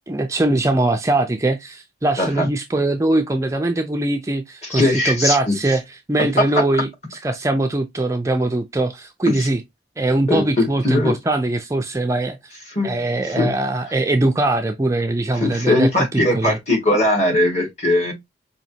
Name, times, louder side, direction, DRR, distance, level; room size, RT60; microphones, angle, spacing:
voice 1, 0.1-5.8 6.1-9.6 10.0-12.6 12.8-16.6, right 2 dB, 15° right, 0.4 m, -21 dB
voice 2, 2.2-2.5 4.6-5.5 6.4-6.6 9.3-9.5 10.3-11.1 12.7-13.0 13.2-13.5 15.3-18.1, left 1 dB, 35° left, 2.0 m, -19 dB
5.2 x 2.8 x 2.7 m
head